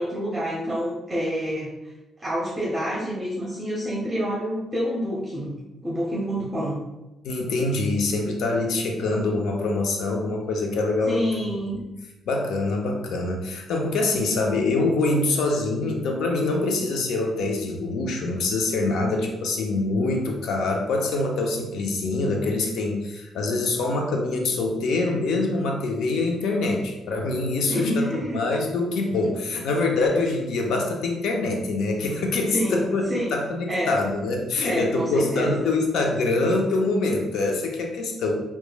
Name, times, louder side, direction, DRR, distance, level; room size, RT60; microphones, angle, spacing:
voice 1, 0.0-1.7 2.2-5.6 5.8-6.8 11.1-11.8 27.7-28.4 32.5-33.4 33.7-34.0 34.6-35.7, equal, 25° right, -5 dB, 0.6 m, -27 dB
voice 2, 7.2-11.3 12.3-28.1 28.3-38.3, left 2 dB, 80° left, 2 dB, 0.5 m, -25 dB
3.1 x 2.1 x 2.2 m, 1.0 s
cardioid pair, 90°, 0 cm